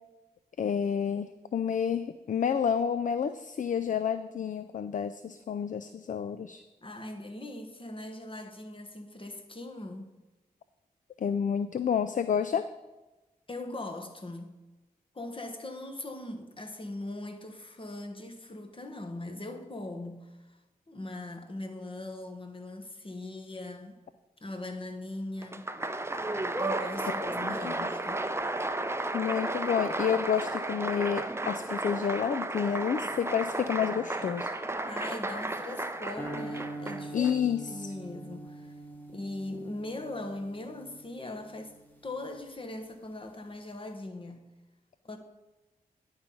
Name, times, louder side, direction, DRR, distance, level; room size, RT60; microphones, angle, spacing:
voice 1, 0.6-6.6 11.2-12.7 27.2-27.7 29.1-34.5 37.1-37.9, left 7 dB, 55° left, 0.4 m, -30 dB
voice 2, 6.8-10.1 13.5-14.6 15.1-20.6 20.9-24.0 24.4-25.6 26.6-28.3 34.8-38.8 39.1-41.7 42.0-44.5 45.0-45.2, left 2 dB, 35° left, 1.2 m, -40 dB
Applause, 25.4-37.3, right 2 dB, 15° right, 0.6 m, -33 dB
sound 1, 36.2-42.5, right 2 dB, 10° left, 1.5 m, -44 dB
10.0 x 3.9 x 5.8 m
cardioid pair, 45°, 16 cm